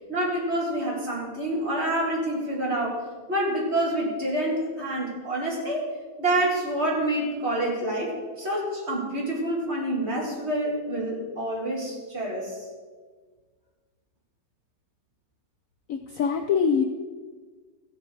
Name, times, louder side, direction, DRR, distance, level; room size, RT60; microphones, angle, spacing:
voice 1, 0.1-3.0 3.3-5.8 6.2-12.6, right 1 dB, 35° right, -3 dB, 2.6 m, -27 dB
voice 2, 15.9-16.8, left 6 dB, 65° left, 4 dB, 0.9 m, -23 dB
15.5 x 6.6 x 4.8 m, 1.4 s
omnidirectional pair, 1.9 m